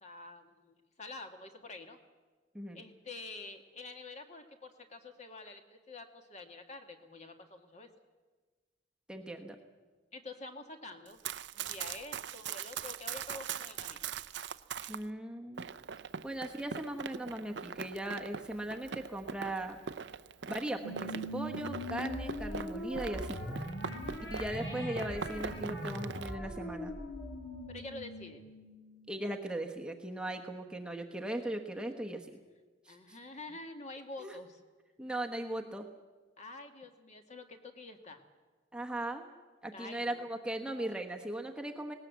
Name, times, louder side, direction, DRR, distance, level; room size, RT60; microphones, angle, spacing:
voice 1, 0.0-2.0 2.7-7.9 10.1-11.2 11.5-14.1 24.0-24.2 27.7-28.4 32.9-34.6 36.4-38.2 39.7-40.3, left 3 dB, 35° left, 5 dB, 1.7 m, -47 dB
voice 2, 9.1-9.6 14.9-15.7 16.2-19.8 20.5-23.6 24.3-26.9 29.1-32.3 32.9-33.2 34.2-34.4 35.0-35.9 38.7-39.3 39.6-41.9, right 1 dB, 5° right, 2 dB, 1.1 m, -38 dB
Run, 11.1-15.0 15.6-24.7 24.9-26.3, right 7 dB, 65° right, 0.6 m, -42 dB
sound 1, 20.8-29.6, equal, 70° left, 5.3 m, -41 dB
19.0 x 18.5 x 8.2 m, 1.3 s
head